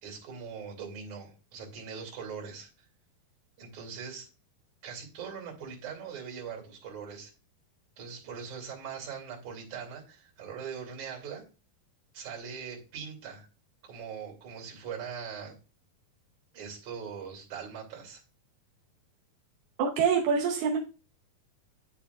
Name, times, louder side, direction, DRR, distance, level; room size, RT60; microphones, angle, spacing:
voice 1, 0.0-2.9 3.6-4.3 4.8-7.3 8.0-11.4 12.1-13.5 13.8-15.6 16.5-18.2, right 6 dB, 50° right, 0 dB, 3.8 m, -41 dB
voice 2, 19.8-20.8, right 6 dB, 85° right, -1 dB, 2.9 m, -25 dB
9.8 x 6.9 x 2.4 m, 0.33 s
omnidirectional pair, 4.4 m